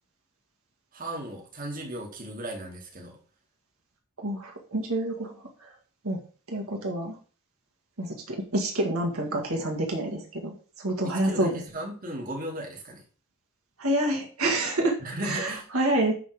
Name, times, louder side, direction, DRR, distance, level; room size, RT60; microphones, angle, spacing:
voice 1, 0.9-3.2 11.0-13.0 15.0-15.6, right 1 dB, 40° right, -1 dB, 2.3 m, -36 dB
voice 2, 4.2-5.7 6.0-6.2 6.5-7.2 8.0-11.6 13.8-15.0 15.2-16.1, right 1 dB, 85° right, 1 dB, 1.9 m, -28 dB
10.5 x 3.8 x 5.0 m, 0.40 s
head